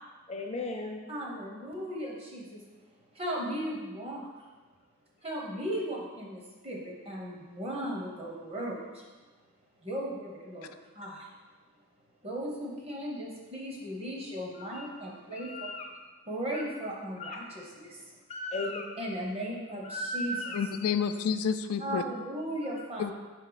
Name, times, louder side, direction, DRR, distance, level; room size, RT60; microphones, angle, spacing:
voice 1, 0.3-1.0 14.6-14.9 15.3-15.9 16.5-16.6 17.2-17.4 18.3-18.9 19.8-20.6, left 2 dB, 30° left, 1 dB, 0.6 m, -36 dB
voice 2, 1.1-2.6 3.1-4.4 5.2-9.1 9.8-11.3 12.2-15.7 16.3-18.1 19.0-20.6 21.8-23.1, right 1 dB, 25° right, -2 dB, 0.9 m, -37 dB
voice 3, 20.5-22.0 23.0-23.1, left 7 dB, 85° left, 10 dB, 0.3 m, -29 dB
5.2 x 4.5 x 4.0 m, 1.3 s
head